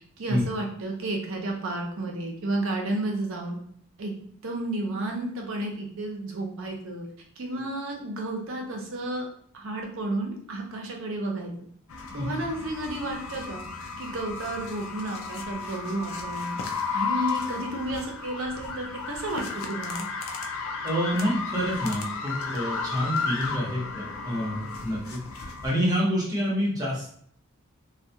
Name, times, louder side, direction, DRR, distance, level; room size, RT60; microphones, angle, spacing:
voice 1, 0.2-3.6 4.0-4.1 4.4-7.1 7.4-9.3 9.5-11.5 12.1-13.6 14.0-16.6 16.9-20.0, right 2 dB, 65° right, 1 dB, 0.6 m, -32 dB
sound 1, 11.9-25.7, left 4 dB, 75° left, 0.4 m, -34 dB
voice 2, 20.8-27.1, equal, 20° right, -6 dB, 0.8 m, -28 dB
2.3 x 2.1 x 2.7 m, 0.63 s
head